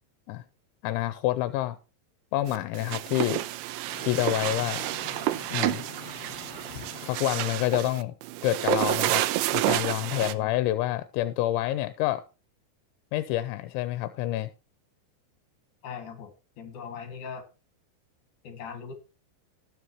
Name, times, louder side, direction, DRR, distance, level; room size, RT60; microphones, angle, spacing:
voice 1, 0.8-1.8 2.3-3.5 4.0-4.9 5.5-5.8 7.0-8.1 8.4-9.2 9.5-12.2 13.1-14.5, left 14 dB, 85° left, 15 dB, 3.0 m, -28 dB
sound 1, 2.5-10.3, right 16 dB, 85° right, 2.9 m, -29 dB
sound 2, 3.9-7.6, left 10 dB, 70° left, 2.9 m, -46 dB
voice 2, 10.2-10.5 15.8-17.4 18.4-18.9, left 6 dB, 50° left, 7 dB, 3.2 m, -40 dB
18.5 x 7.2 x 2.9 m, 0.30 s
omnidirectional pair, 5.3 m